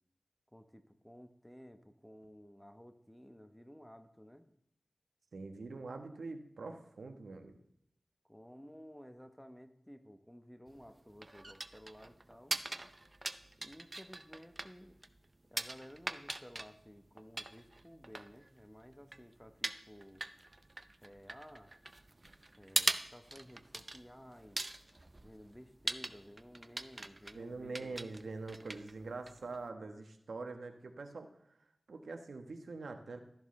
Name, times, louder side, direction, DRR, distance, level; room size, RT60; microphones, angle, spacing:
voice 1, 0.5-4.5 8.2-12.5 13.6-15.0 15.5-20.2 21.0-21.7 22.6-24.6 25.2-28.0, equal, 5° left, 9 dB, 1.0 m, -55 dB
voice 2, 5.3-7.6 27.3-31.3 31.9-33.2, right 3 dB, 85° right, 5 dB, 1.1 m, -44 dB
sound 1, 10.7-29.7, right 2 dB, 35° right, 0.5 m, -42 dB
13.0 x 11.0 x 3.2 m, 0.77 s
cardioid pair, 55°, 0 cm